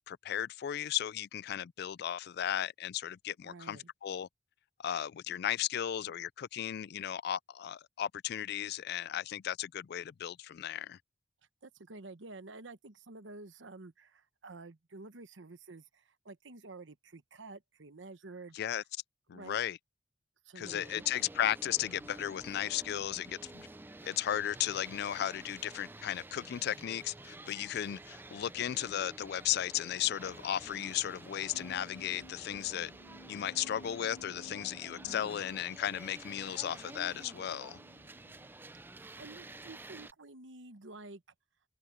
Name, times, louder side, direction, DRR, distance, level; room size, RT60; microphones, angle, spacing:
voice 1, 0.0-4.3 4.8-11.0 18.5-18.8 19.3-19.8 20.6-23.7 24.0-32.9 33.3-37.8, left 11 dB, 60° left, 0.3 m, -35 dB
voice 2, 3.4-3.9 11.6-18.8 19.3-19.6 20.4-21.1 35.0-35.4 38.9-41.2, right 3 dB, 80° right, 1.1 m, -50 dB
sound 1, 20.6-40.1, right 2 dB, 10° right, 0.4 m, -50 dB
sound 2, 31.5-38.5, left 1 dB, 85° left, 1.0 m, -55 dB
head